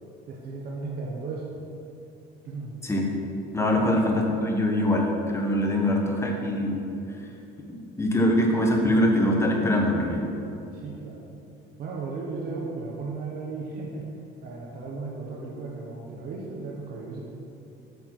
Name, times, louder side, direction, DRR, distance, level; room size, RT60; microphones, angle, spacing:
voice 1, 0.3-1.6 2.4-2.7 3.5-3.9 10.7-11.3 11.8-14.1 14.4-17.2, right 3 dB, 50° right, -2 dB, 1.0 m, -35 dB
voice 2, 3.5-6.9 7.7-10.2, left 1 dB, 15° left, 1 dB, 1.0 m, -23 dB
8.2 x 4.2 x 6.2 m, 2.7 s
cardioid pair, 140°, 21 cm